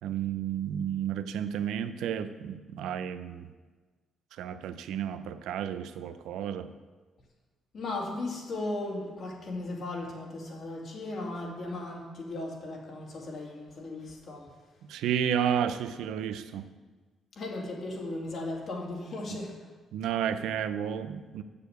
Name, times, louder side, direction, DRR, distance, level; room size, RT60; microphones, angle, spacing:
voice 1, 0.0-3.5 4.4-6.7 14.9-16.7 19.9-21.4, right 9 dB, 85° right, 10 dB, 0.5 m, -32 dB
voice 2, 7.7-14.5 17.4-19.7, left 2 dB, 55° left, -1 dB, 2.4 m, -36 dB
7.1 x 6.8 x 8.0 m, 1.3 s
cardioid pair, 90°, 0 cm